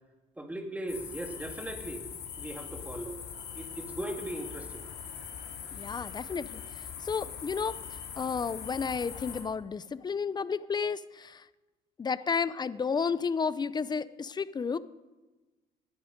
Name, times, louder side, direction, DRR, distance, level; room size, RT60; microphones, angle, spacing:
voice 1, 0.4-2.0 2.4-3.2 3.5-4.8, right 1 dB, 10° right, 4 dB, 2.2 m, -38 dB
sound 1, 0.9-9.4, left 7 dB, 70° left, 3.5 m, -42 dB
voice 2, 5.7-6.6 7.0-7.8 8.2-11.4 12.0-14.8, left 5 dB, 25° left, 16 dB, 0.6 m, -32 dB
19.5 x 11.0 x 5.2 m, 1.2 s
cardioid pair, 110°, 17 cm